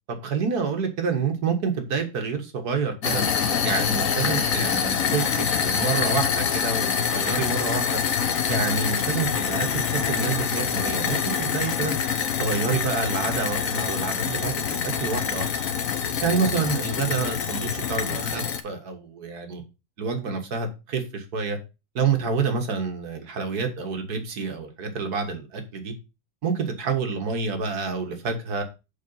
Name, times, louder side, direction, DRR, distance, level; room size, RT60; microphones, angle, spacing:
voice 1, 0.1-3.2 3.6-8.0 8.5-11.9 12.4-15.5 16.2-19.6 20.0-21.6 22.0-25.9 26.4-28.6, right 5 dB, 65° right, 2.0 m, -28 dB
sound 1, 3.0-18.6, left 7 dB, 55° left, 1.2 m, -25 dB
7.0 x 4.7 x 5.5 m
omnidirectional pair, 1.9 m